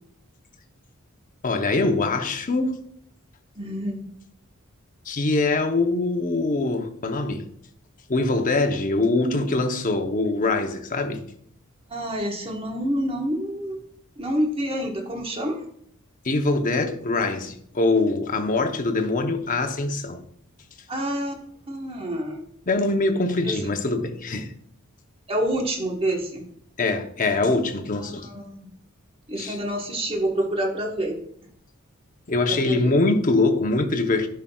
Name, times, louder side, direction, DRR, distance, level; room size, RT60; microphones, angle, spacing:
voice 1, 1.4-2.8 5.1-7.4 8.1-11.2 16.2-20.2 22.7-24.5 26.8-28.3 29.4-29.6 32.3-34.3, left 2 dB, 40° left, 0.8 m, -23 dB
voice 2, 3.6-4.1 11.9-13.8 14.2-15.7 20.9-21.3 21.7-22.4 23.4-23.5 25.3-26.4 28.2-28.7 29.3-31.2 32.5-33.0, right 1 dB, 25° right, 1.3 m, -27 dB
11.0 x 5.7 x 2.3 m
head